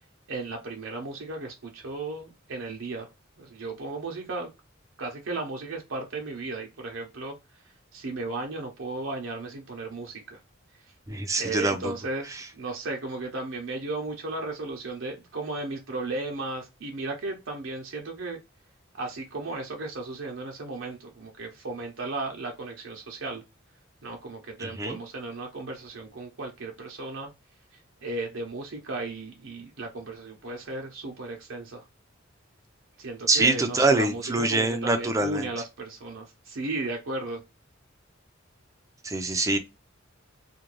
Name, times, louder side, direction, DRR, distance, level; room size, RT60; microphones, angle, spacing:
voice 1, 0.3-3.1 3.4-4.5 5.0-7.3 7.9-10.4 11.4-18.4 18.9-23.4 24.0-27.3 28.0-31.8 33.0-37.4, right 3 dB, 70° right, 0.7 m, -35 dB
voice 2, 11.1-11.9 24.6-25.0 33.3-35.5 39.0-39.6, right 2 dB, 15° right, 0.5 m, -24 dB
2.5 x 2.2 x 3.0 m
head